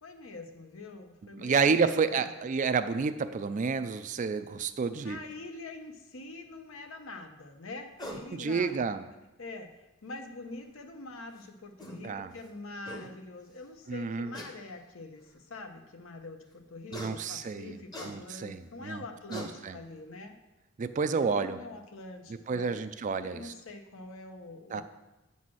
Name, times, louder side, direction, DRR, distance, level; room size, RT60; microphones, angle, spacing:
voice 1, 0.0-1.8 2.1-2.5 5.0-8.9 9.4-20.4 21.2-22.8 23.2-24.8, left 2 dB, 70° left, 5 dB, 0.8 m, -45 dB
voice 2, 1.3-5.2 8.3-9.0 12.0-12.3 13.9-14.3 16.9-17.8 18.0-19.0 19.3-19.8 20.8-21.6 22.5-23.5 24.7-24.8, right 5 dB, 35° right, 11 dB, 0.3 m, -30 dB
sound 1, 8.0-8.3 9.7-9.8 11.4-11.5 11.8-12.0 12.5-12.6 12.9-13.1 14.3-14.5 15.3-15.4 16.9-17.1 17.9-18.1 18.9-19.0 19.3-19.5, equal, 20° left, 0.9 m, -41 dB
8.6 x 4.1 x 6.1 m, 1.0 s
head